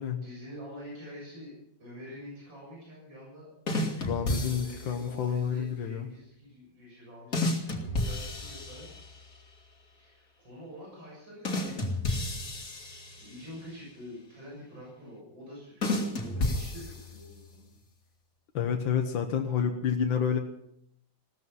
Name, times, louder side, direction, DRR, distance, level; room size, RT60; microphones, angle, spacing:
voice 1, 0.2-3.5 4.4-8.9 9.9-12.5 13.2-17.8, equal, 80° right, -4 dB, 7.9 m, -47 dB
sound 1, 3.7-5.1 7.3-9.3 11.4-13.6 15.8-17.4, left 2 dB, 45° left, 2.7 m, -32 dB
voice 2, 4.0-6.1 18.5-20.4, left 7 dB, 90° left, 4 dB, 1.9 m, -29 dB
17.0 x 14.0 x 5.6 m, 0.74 s
omnidirectional pair, 2.0 m